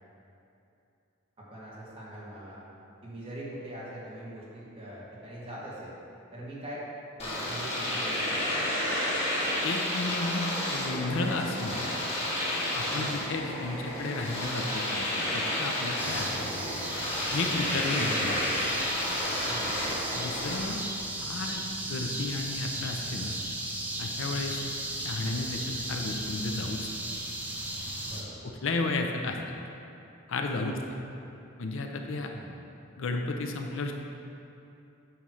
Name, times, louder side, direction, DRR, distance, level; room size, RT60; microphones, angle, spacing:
voice 1, 1.4-2.6 3.0-5.9 6.3-6.8 7.2-8.6 12.9-13.3 17.6-18.1 19.5-19.8 24.3-24.6 28.0-28.5 30.5-30.9 32.3-32.5, right 1 dB, 25° right, -7 dB, 1.8 m, -43 dB
Domestic sounds home sounds, 7.2-20.6, left 1 dB, 30° left, 1.6 m, -31 dB
voice 2, 9.6-10.4 10.7-11.8 12.7-15.1 15.3-16.5 17.3-18.4 20.1-20.8 21.2-21.6 21.9-23.3 24.0-24.6 25.0-25.6 25.9-26.8 28.4-29.6 30.3-30.8 31.6-32.3 33.0-33.9, left 3 dB, 65° left, 3 dB, 0.6 m, -33 dB
sound 1, 16.0-28.2, right 1 dB, 10° right, 0.7 m, -36 dB
9.1 x 3.2 x 6.3 m, 2.7 s
head